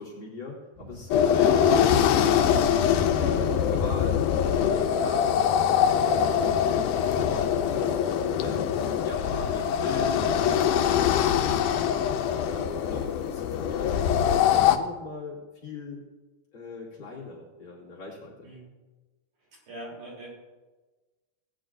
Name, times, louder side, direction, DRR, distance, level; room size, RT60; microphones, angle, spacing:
voice 1, 0.0-2.3 2.8-8.0 8.4-8.6 9.0-12.0 12.4-16.0 16.5-18.5, left 3 dB, 40° left, -7 dB, 3.3 m, -40 dB
sound 1, 0.7-6.6, equal, 10° right, 1.0 m, -44 dB
sound 2, 1.1-14.8, left 9 dB, 90° left, 2.1 m, -23 dB
voice 2, 19.4-20.3, right 1 dB, 80° right, -4 dB, 5.0 m, -43 dB
18.5 x 9.7 x 2.6 m, 1.2 s
omnidirectional pair, 3.5 m